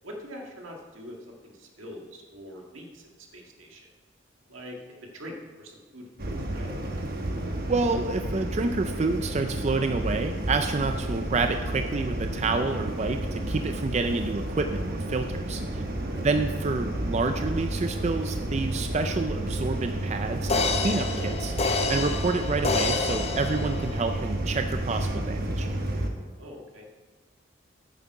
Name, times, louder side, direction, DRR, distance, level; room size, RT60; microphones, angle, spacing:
voice 1, 0.0-3.8 4.5-4.8 5.1-6.7 16.1-16.2 26.4-27.0, equal, 85° right, 1 dB, 1.7 m, -43 dB
sound 1, 6.2-26.1, right 1 dB, 50° right, 1.1 m, -31 dB
voice 2, 7.7-15.8 16.2-25.7, right 3 dB, 35° right, 7 dB, 0.4 m, -28 dB
sound 2, 19.8-19.9 20.5-24.2 24.7-24.8, left 3 dB, 30° left, 0.7 m, -28 dB
9.1 x 8.1 x 4.7 m, 1.4 s
head